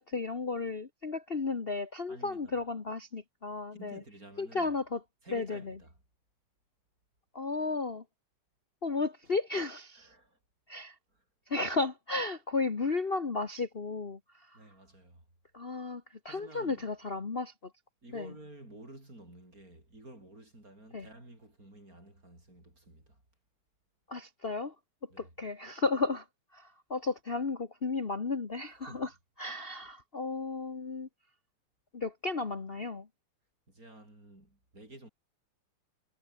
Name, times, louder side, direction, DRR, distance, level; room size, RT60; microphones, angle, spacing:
voice 1, 0.0-4.0 4.4-5.0 5.3-5.8 7.3-8.0 8.8-10.1 10.7-10.9 11.5-14.6 15.5-17.5 18.1-18.3 20.9-21.1 24.1-24.7 25.2-26.2 26.5-29.1 29.4-31.1 31.9-33.1, left 3 dB, 45° left, 0.7 m, -34 dB
voice 2, 2.1-2.6 3.8-4.7 5.2-6.0 9.9-10.4 11.1-11.2 14.5-15.2 16.2-16.9 18.0-23.2 25.1-25.3 28.6-29.1 33.7-35.1, right 1 dB, 25° right, 8.4 m, -52 dB
omnidirectional pair, 3.6 m